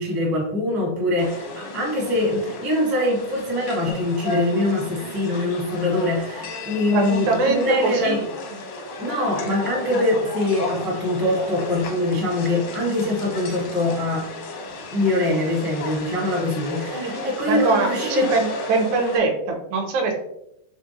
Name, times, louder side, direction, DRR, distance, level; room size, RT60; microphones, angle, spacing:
voice 1, 0.0-8.2 9.0-14.3 14.9-18.3, left 1 dB, 25° right, -4 dB, 0.4 m, -23 dB
sound 1, 1.2-19.2, left 2 dB, 75° left, 1.2 m, -34 dB
voice 2, 6.9-8.3 16.9-20.1, right 3 dB, 80° right, 2 dB, 2.1 m, -23 dB
4.9 x 3.6 x 2.8 m, 0.80 s
omnidirectional pair, 3.4 m